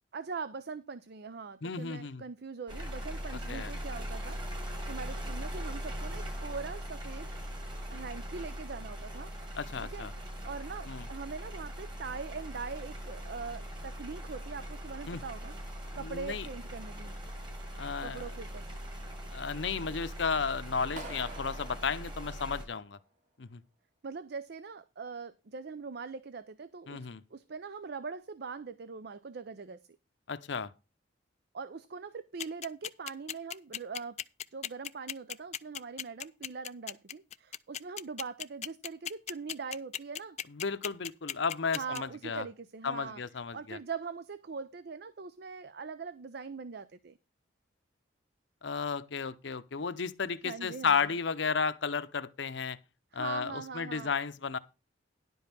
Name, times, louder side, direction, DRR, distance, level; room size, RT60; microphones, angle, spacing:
voice 1, 0.1-7.3 7.9-9.3 9.8-10.1 10.4-15.5 16.0-17.1 18.0-18.7 24.0-29.9 31.5-34.2 34.5-40.4 41.7-43.2 43.5-47.2 50.4-51.0 53.1-54.1, right 5 dB, 55° right, 0.5 m, -42 dB
voice 2, 1.6-2.2 3.5-3.7 9.6-10.1 10.9-11.1 15.1-15.2 15.9-16.5 17.8-18.3 19.3-23.0 23.4-23.6 26.9-27.2 30.3-30.7 40.5-42.5 42.8-43.8 48.6-52.8 53.1-54.6, left 5 dB, 65° left, 0.7 m, -33 dB
sound 1, 2.7-22.7, equal, 25° right, 2.2 m, -41 dB
Clapping, 21.0-23.0, right 2 dB, 40° right, 1.9 m, -47 dB
sound 2, 32.4-42.0, left 10 dB, 35° left, 0.4 m, -36 dB
11.0 x 5.4 x 6.0 m
head